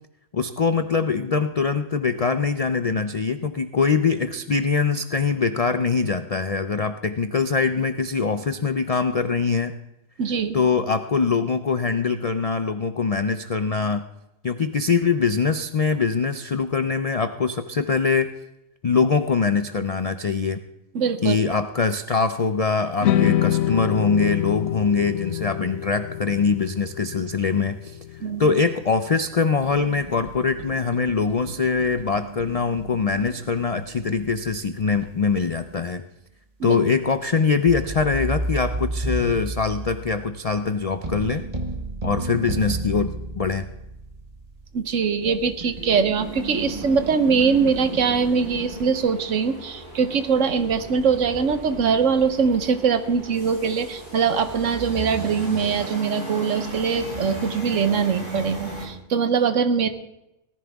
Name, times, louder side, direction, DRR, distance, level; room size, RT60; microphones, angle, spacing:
voice 1, 0.3-9.8 10.5-14.0 14.4-18.3 18.8-20.6 21.2-28.0 28.4-36.0 36.6-41.5 42.0-43.6, left 5 dB, 70° left, 10 dB, 0.3 m, -23 dB
voice 2, 10.2-10.5 20.9-21.4 28.2-28.5 36.6-36.8 44.7-59.9, right 6 dB, 70° right, 10 dB, 1.3 m, -22 dB
sound 1, 23.0-29.3, left 12 dB, 90° left, 1.2 m, -26 dB
sound 2, 29.6-35.8 37.6-49.0, right 2 dB, 30° right, 1.3 m, -33 dB
sound 3, 46.2-58.9, right 1 dB, 35° left, 4.6 m, -37 dB
18.0 x 14.5 x 3.5 m, 0.90 s
omnidirectional pair, 1.4 m